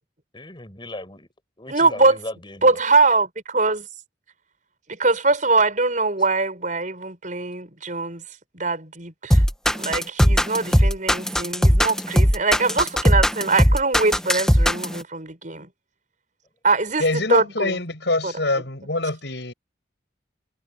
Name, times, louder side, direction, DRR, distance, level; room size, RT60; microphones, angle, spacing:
voice 1, 0.3-1.3 1.6-2.8, left 1 dB, 25° left, 5.8 m, -37 dB
voice 2, 1.7-2.2 2.6-3.9 4.9-8.2 8.5-9.4 9.7-15.7 16.6-17.8 18.2-18.3, right 3 dB, 45° right, 6.5 m, -22 dB
sound 1, 9.3-15.0, equal, 5° left, 1.2 m, -17 dB
voice 3, 17.0-19.5, left 2 dB, 70° left, 7.1 m, -24 dB
head